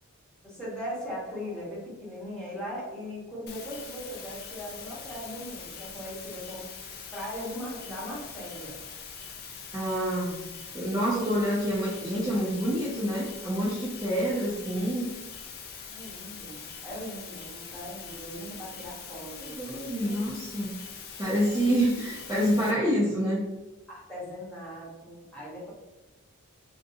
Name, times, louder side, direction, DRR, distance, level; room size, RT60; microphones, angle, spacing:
voice 1, 0.4-8.8 15.9-20.1 21.4-21.7 23.9-25.7, equal, 5° left, -7 dB, 1.1 m, -39 dB
sound 1, 3.5-22.7, left 6 dB, 45° left, 0.4 m, -43 dB
voice 2, 9.7-10.5 10.7-15.1 19.6-20.7 21.2-23.5, equal, 15° right, -9 dB, 0.6 m, -27 dB
3.6 x 2.6 x 2.6 m, 1.1 s
head